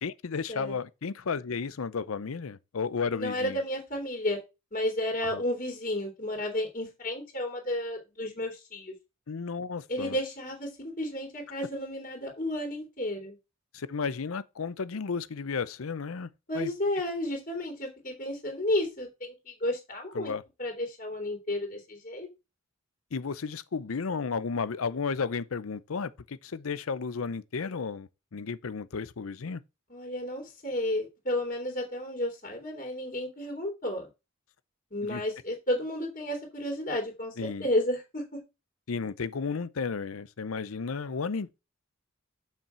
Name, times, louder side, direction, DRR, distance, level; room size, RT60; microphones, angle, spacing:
voice 1, 0.0-3.6 5.3-5.4 9.3-10.2 13.7-16.7 20.1-20.4 23.1-29.6 35.0-35.2 37.4-37.7 38.9-41.6, left 5 dB, 85° left, 0.6 m, -33 dB
voice 2, 3.1-4.4 4.7-8.9 9.9-13.4 16.5-20.3 20.6-22.3 29.9-34.1 34.9-38.2, left 1 dB, 40° left, 2.9 m, -32 dB
7.3 x 5.8 x 4.4 m
head